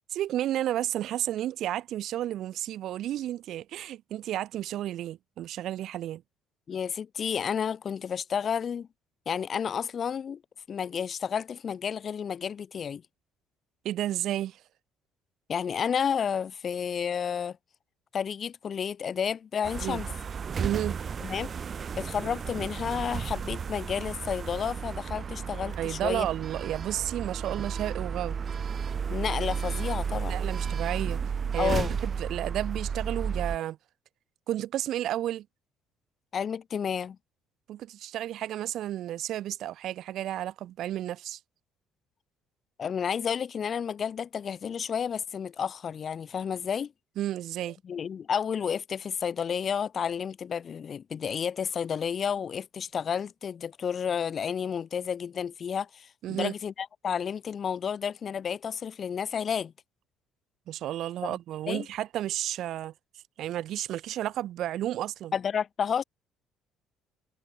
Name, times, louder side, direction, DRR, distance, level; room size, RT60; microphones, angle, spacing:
voice 1, 0.1-6.2 13.8-14.6 19.8-20.0 20.6-21.0 25.8-28.4 30.3-33.8 34.5-35.5 37.7-41.4 47.2-47.8 56.2-56.5 60.7-62.9 63.4-65.3, right 12 dB, 65° right, 0.3 m, -32 dB
voice 2, 6.7-8.9 9.3-10.4 10.7-13.0 15.5-17.6 18.1-20.1 21.2-21.5 22.0-26.3 29.1-30.4 31.6-32.0 36.3-37.2 42.8-46.9 47.8-59.7 61.3-61.4 61.7-61.9 65.3-66.0, left 7 dB, 45° left, 2.0 m, -31 dB
sound 1, 19.6-33.6, right 6 dB, 40° right, 0.9 m, -33 dB
supercardioid pair, 85°, 0 cm